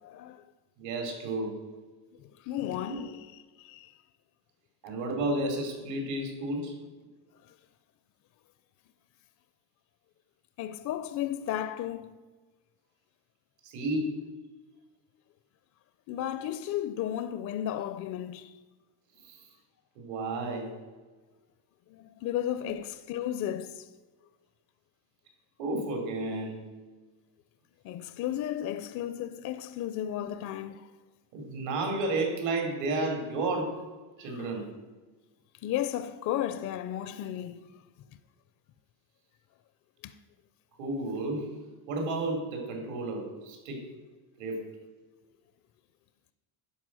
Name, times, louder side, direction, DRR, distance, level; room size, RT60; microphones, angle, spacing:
voice 1, 0.0-0.4 2.4-3.2 3.6-3.9 10.6-12.1 16.1-18.5 21.9-23.9 27.8-30.8 34.3-34.4 35.6-37.6 40.0-40.1, left 11 dB, 45° left, 0.4 m, -34 dB
voice 2, 0.8-1.6 2.9-3.0 4.8-6.8 13.6-14.2 19.2-19.5 19.9-20.7 22.6-22.7 25.6-26.7 30.2-30.3 31.3-33.8 34.2-34.7 40.8-41.5 41.9-43.9 44.4-44.6, right 2 dB, 75° right, 3.4 m, -32 dB
11.0 x 5.2 x 7.5 m
cardioid pair, 155°, 44 cm